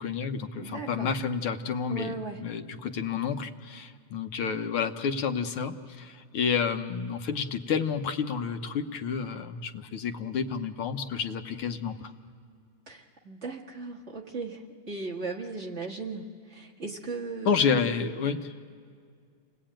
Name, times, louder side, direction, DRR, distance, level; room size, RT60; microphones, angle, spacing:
voice 1, 0.0-12.1 17.5-18.5, left 6 dB, 85° left, 7 dB, 1.9 m, -30 dB
voice 2, 0.6-1.2 1.9-2.5 12.9-17.6, right 3 dB, 35° right, -2 dB, 2.0 m, -37 dB
29.5 x 20.0 x 8.9 m, 2.1 s
omnidirectional pair, 2.3 m